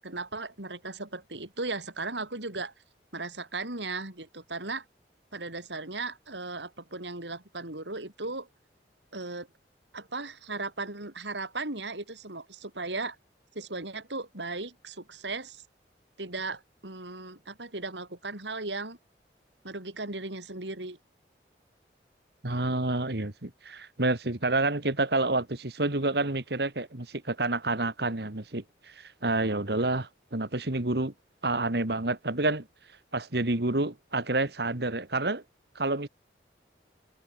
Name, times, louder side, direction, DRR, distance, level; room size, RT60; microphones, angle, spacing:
voice 1, 0.0-2.7 3.1-4.8 5.3-8.5 9.1-9.5 9.9-13.2 13.6-15.6 16.2-19.0 19.6-21.0, right 3 dB, 85° right, 5.2 m, -36 dB
voice 2, 22.4-31.1 31.4-32.7 33.1-35.4 35.8-36.1, right 2 dB, 65° right, 1.9 m, -29 dB
head